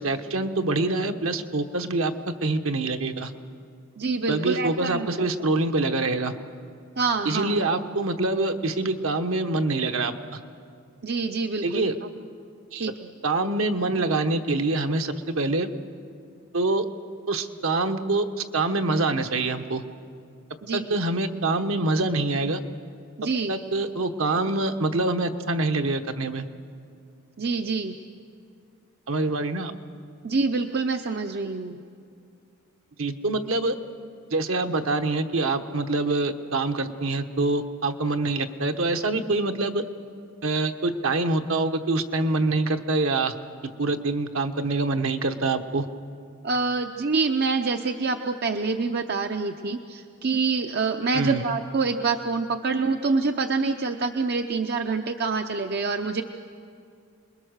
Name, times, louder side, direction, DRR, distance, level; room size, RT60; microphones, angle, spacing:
voice 1, 0.0-2.1 2.4-3.3 4.3-6.3 7.2-10.4 11.6-12.0 12.7-12.9 13.2-15.7 16.5-16.8 17.3-18.3 18.5-19.8 20.7-22.6 23.5-26.4 29.1-29.7 33.0-33.7 34.3-39.8 40.4-43.3 43.8-45.9 51.1-51.4, right 2 dB, 65° right, 6 dB, 1.1 m, -25 dB
voice 2, 4.0-5.3 7.0-7.5 11.0-11.9 12.8-13.1 20.6-20.8 23.2-23.6 27.4-28.0 30.2-31.8 46.4-56.2, right 4 dB, 45° right, 5 dB, 0.6 m, -26 dB
27.5 x 21.0 x 6.5 m, 2.4 s
head